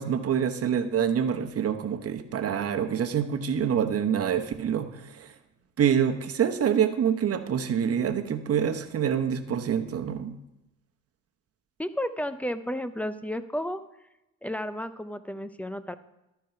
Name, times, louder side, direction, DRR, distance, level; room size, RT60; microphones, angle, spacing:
voice 1, 0.0-5.3 5.8-10.3, right 8 dB, 50° right, 7 dB, 1.0 m, -26 dB
voice 2, 11.8-13.8 14.4-16.0, equal, 5° left, 12 dB, 0.5 m, -32 dB
12.5 x 4.6 x 5.6 m, 0.94 s
cardioid pair, 90°, 30 cm